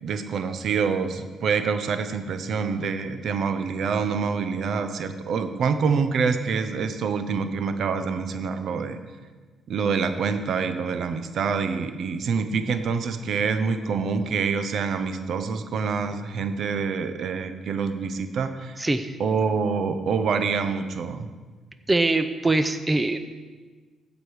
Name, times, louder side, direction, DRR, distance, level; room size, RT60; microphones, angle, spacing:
voice 1, 0.0-9.0 9.7-18.8 19.2-21.3, right 5 dB, 65° right, 9 dB, 0.8 m, -26 dB
voice 2, 18.8-19.2 21.9-23.2, right 2 dB, 20° right, 9 dB, 0.5 m, -23 dB
15.0 x 5.1 x 4.8 m, 1.4 s
cardioid pair, 90°, 0 cm